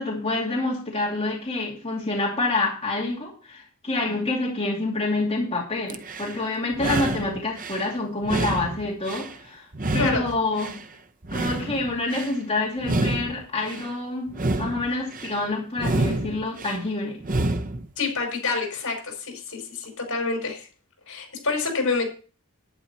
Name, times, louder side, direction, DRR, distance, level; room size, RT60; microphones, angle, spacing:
voice 1, 0.0-9.7 9.9-10.8 11.3-17.2, left 2 dB, 25° left, -3 dB, 2.7 m, -27 dB
sound 1, 5.9-6.4 6.7-7.9 8.2-9.4 9.7-10.8 11.2-12.3 12.8-13.9 14.3-15.4 15.8-16.8 17.2-17.9, right 2 dB, 40° right, 0.9 m, -28 dB
voice 2, 18.0-20.7 21.1-22.1, left 4 dB, 70° left, 3 dB, 5.0 m, -27 dB
11.0 x 10.0 x 4.3 m, 0.37 s
head